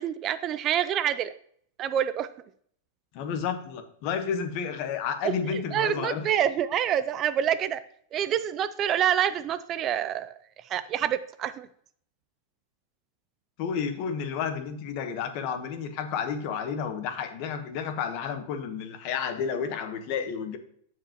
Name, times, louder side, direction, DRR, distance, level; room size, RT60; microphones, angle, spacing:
voice 1, 0.0-1.3 1.8-2.3 5.2-7.8 8.1-10.3 10.7-11.7, right 10 dB, 30° right, 13 dB, 0.4 m, -27 dB
voice 2, 3.1-6.3 13.6-20.6, left 7 dB, 50° left, 8 dB, 1.1 m, -31 dB
13.5 x 4.8 x 2.9 m, 0.63 s
supercardioid pair, 140°, 0 cm